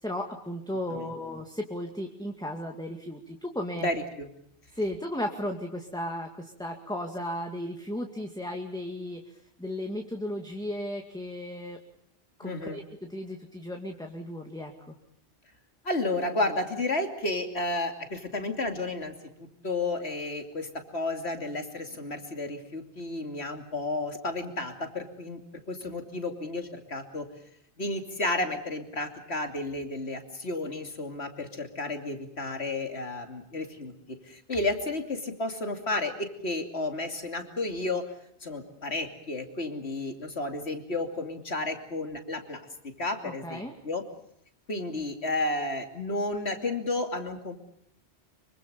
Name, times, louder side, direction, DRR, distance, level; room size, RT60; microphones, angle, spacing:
voice 1, 0.0-3.9 4.7-11.8 12.4-15.0 43.2-43.7, left 1 dB, 5° left, 2 dB, 2.2 m, -35 dB
voice 2, 3.8-4.3 12.4-12.8 15.8-19.1 19.4-25.4 25.7-27.3 27.8-33.9 34.3-38.0 38.4-42.7 43.0-44.0 44.7-47.5, left 2 dB, 80° left, 5 dB, 3.1 m, -32 dB
25.5 x 24.5 x 6.9 m, 0.71 s
omnidirectional pair, 1.1 m